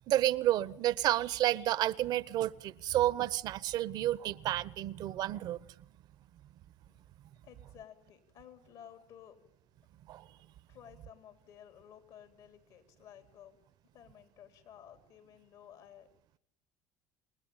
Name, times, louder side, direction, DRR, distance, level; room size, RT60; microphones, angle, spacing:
voice 1, 0.1-5.6 10.1-10.3, right 13 dB, 60° right, 1.0 m, -30 dB
voice 2, 7.4-9.4 10.7-13.6 13.9-16.1, left 9 dB, 70° left, 4.0 m, -55 dB
29.0 x 19.5 x 9.0 m
supercardioid pair, 80°, 8 cm